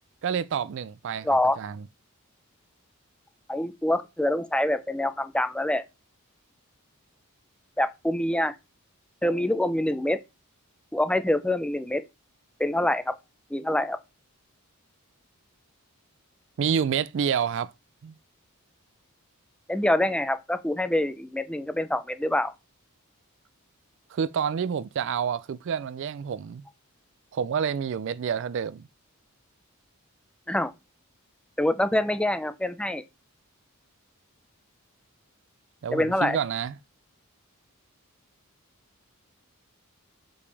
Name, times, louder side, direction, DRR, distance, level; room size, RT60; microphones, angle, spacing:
voice 1, 0.2-1.3 1.6-1.8 16.6-17.7 18.0-18.1 24.1-26.6 27.3-28.9 35.8-36.8, right 7 dB, 55° right, 0.3 m, -28 dB
voice 2, 1.2-1.6 3.5-5.8 7.8-8.6 9.2-10.2 10.9-12.0 12.6-13.1 13.5-14.0 19.7-22.5 30.5-30.7 31.6-33.0 35.9-36.4, left 1 dB, 5° left, 0.5 m, -25 dB
6.8 x 5.2 x 3.4 m
head